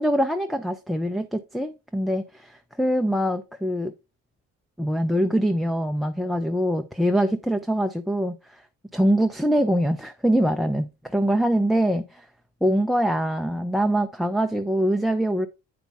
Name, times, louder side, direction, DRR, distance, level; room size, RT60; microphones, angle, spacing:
voice 1, 0.0-3.9 4.8-8.4 8.9-12.0 12.6-15.5, equal, ahead, 0.6 m, -23 dB
8.5 x 5.2 x 3.4 m
cardioid pair, 90°, 30 cm